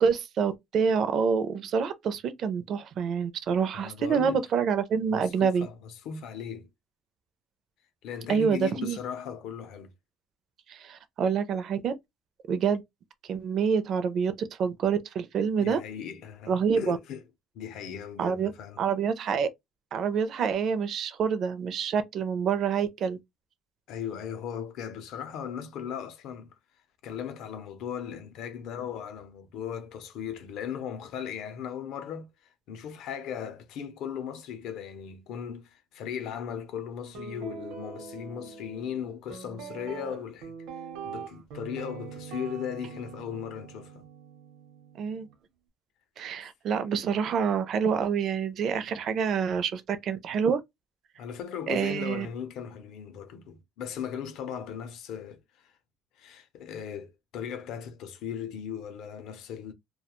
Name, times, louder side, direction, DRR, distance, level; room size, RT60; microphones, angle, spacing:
voice 1, 0.0-5.7 8.3-9.0 10.7-11.9 12.5-12.8 13.3-15.8 16.5-17.0 18.2-18.5 18.8-19.5 19.9-23.2 45.0-45.3 46.2-50.6 51.7-52.3, right 6 dB, 40° right, 0.4 m, -27 dB
voice 2, 3.7-4.4 5.1-6.7 8.0-9.9 15.6-17.2 17.5-18.8 23.9-26.5 27.0-40.5 41.0-44.1 51.2-55.7 56.2-59.7, left 8 dB, 55° left, 0.5 m, -37 dB
Guitar, 37.1-45.3, right 6 dB, 80° right, 0.8 m, -43 dB
2.3 x 2.1 x 2.9 m
cardioid pair, 175°, 0 cm